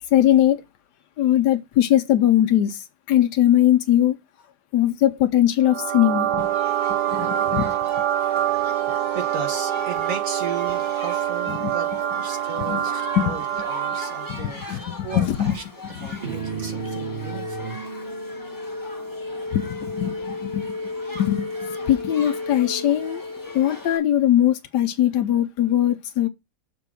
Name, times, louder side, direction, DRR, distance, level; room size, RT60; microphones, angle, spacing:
voice 1, 0.1-0.6 1.2-4.2 4.7-6.5 7.1-7.7 11.6-11.7 12.6-12.8 13.2-13.3 14.3-15.5 15.9-16.0 19.5-20.7 21.1-23.2 23.5-26.3, left 12 dB, 85° left, 1.3 m, -20 dB
sound 1, 5.6-14.5, right 11 dB, 75° right, 1.1 m, -25 dB
Shout / Human group actions, 6.4-24.0, left 2 dB, 10° left, 1.5 m, -41 dB
voice 2, 8.5-8.8 9.1-17.7, right 5 dB, 55° right, 2.0 m, -36 dB
sound 2, 16.2-24.1, equal, 25° right, 4.0 m, -33 dB
6.9 x 4.1 x 6.1 m
omnidirectional pair, 1.8 m